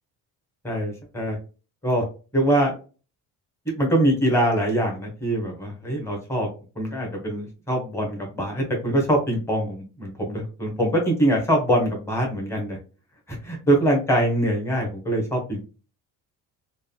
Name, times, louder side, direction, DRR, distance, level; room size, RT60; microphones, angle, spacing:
voice 1, 0.6-1.4 1.8-2.0 2.3-2.8 3.7-6.5 6.8-12.8 13.3-15.7, right 1 dB, 5° left, 0 dB, 1.1 m, -23 dB
3.5 x 2.2 x 2.2 m, 0.35 s
cardioid pair, 100°, 37 cm